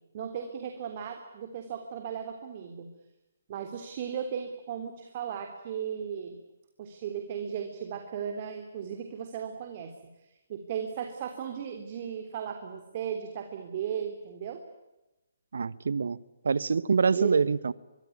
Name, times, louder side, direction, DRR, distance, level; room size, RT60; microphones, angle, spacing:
voice 1, 0.1-2.9 3.5-6.4 6.8-9.9 10.5-14.6 17.1-17.4, right 8 dB, 40° right, 5 dB, 3.3 m, -36 dB
voice 2, 15.5-16.2 16.4-17.7, right 5 dB, 65° right, 19 dB, 1.1 m, -25 dB
24.0 x 24.0 x 9.6 m, 1.0 s
figure-of-eight pair, 140°, 0 cm